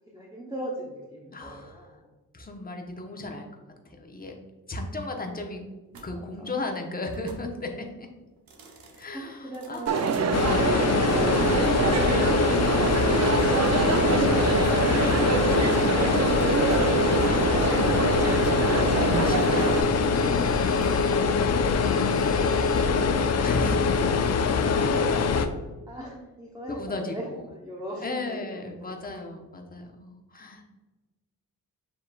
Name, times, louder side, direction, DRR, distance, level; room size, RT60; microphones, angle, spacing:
voice 1, 0.1-2.1 6.2-6.5 8.6-8.8 9.1-10.6 19.8-20.7 22.2-24.1 24.6-29.1, equal, 10° right, -4 dB, 0.9 m, -40 dB
voice 2, 1.3-1.9 2.3-3.5 3.8-4.4 4.7-5.7 6.0-8.1 9.0-11.0 19.2-19.7 23.4-23.9 26.7-27.4 28.0-30.7, left 2 dB, 25° left, 2 dB, 0.9 m, -35 dB
sound 1, 5.9-6.1 7.1-7.5 8.4-9.1 9.5-10.3 11.9-22.9, equal, 70° right, 0.9 m, -42 dB
Crowd, 9.9-19.8, right 5 dB, 45° right, 0.5 m, -25 dB
sound 2, 10.3-25.5, left 5 dB, 45° left, 0.4 m, -23 dB
7.1 x 3.1 x 2.3 m, 1.2 s
cardioid pair, 65°, 35 cm